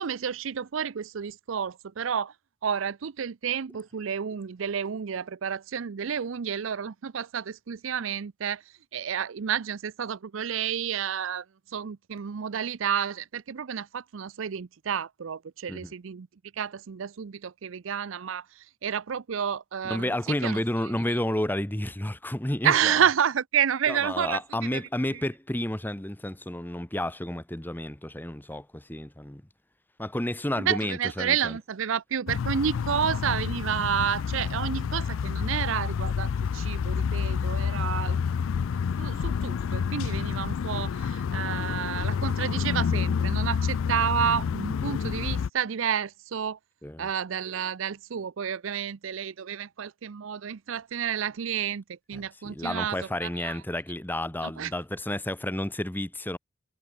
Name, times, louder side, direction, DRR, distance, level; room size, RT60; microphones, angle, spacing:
voice 1, 0.0-2.3 2.6-8.6 8.9-11.4 11.7-16.3 16.6-20.1 20.4-20.9 22.6-24.4 24.7-24.8 30.6-38.2 39.0-46.6 47.0-53.6 54.4-54.7, right 8 dB, 65° right, 0.5 m, -30 dB
voice 2, 19.8-23.0 23.9-29.4 30.0-31.6 46.8-47.1 52.1-56.4, left 1 dB, 10° left, 1.0 m, -31 dB
sound 1, 32.3-45.5, left 6 dB, 70° left, 0.4 m, -28 dB
head